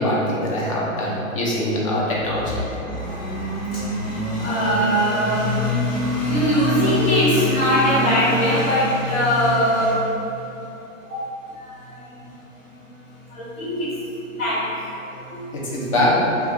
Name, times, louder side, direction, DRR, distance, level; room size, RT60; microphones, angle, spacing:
voice 1, 0.0-2.6 15.3-16.2, left 1 dB, 25° left, -5 dB, 0.4 m, -23 dB
voice 2, 2.2-15.9, equal, 55° left, -11 dB, 1.3 m, -22 dB
2.6 x 2.3 x 3.5 m, 2.9 s
hypercardioid pair, 130°, 41 cm